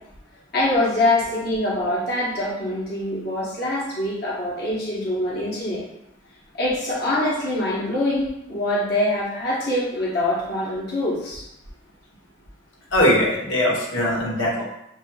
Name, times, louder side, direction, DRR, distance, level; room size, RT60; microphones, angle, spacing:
voice 1, 0.5-5.9 6.5-11.4, left 1 dB, 55° left, -6 dB, 1.1 m, -24 dB
voice 2, 12.9-14.6, left 1 dB, 90° left, -5 dB, 1.4 m, -20 dB
6.7 x 2.9 x 2.3 m, 0.81 s
head